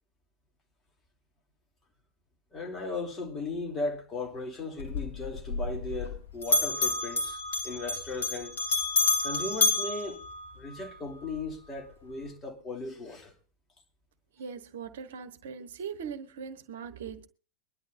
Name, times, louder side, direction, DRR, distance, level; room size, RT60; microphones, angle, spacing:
voice 1, 2.5-8.5 9.2-10.2 10.5-13.3, left 3 dB, 20° left, 3.0 m, -37 dB
Bell, 4.8-6.2 6.4-10.9, left 3 dB, 65° left, 2.5 m, -29 dB
voice 2, 14.4-17.3, right 6 dB, 60° right, 1.2 m, -40 dB
22.5 x 11.0 x 2.7 m
figure-of-eight pair, 90°, 0 cm